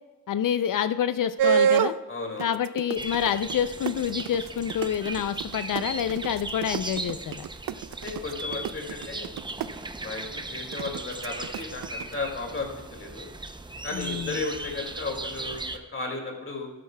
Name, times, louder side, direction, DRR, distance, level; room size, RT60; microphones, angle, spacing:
voice 1, 0.3-2.0 2.4-7.5 13.9-14.3, left 9 dB, 65° left, 12 dB, 0.5 m, -27 dB
sound 1, 1.4-2.0 2.4-9.7 10.7-12.1, right 8 dB, 75° right, 0.5 m, -26 dB
voice 2, 2.1-2.6 8.0-13.3 13.8-16.7, left 3 dB, 35° left, 1 dB, 2.3 m, -35 dB
sound 2, 3.0-15.8, right 2 dB, 15° right, 0.5 m, -38 dB
12.5 x 12.0 x 2.2 m, 1.3 s
wide cardioid pair, 130°, 35 cm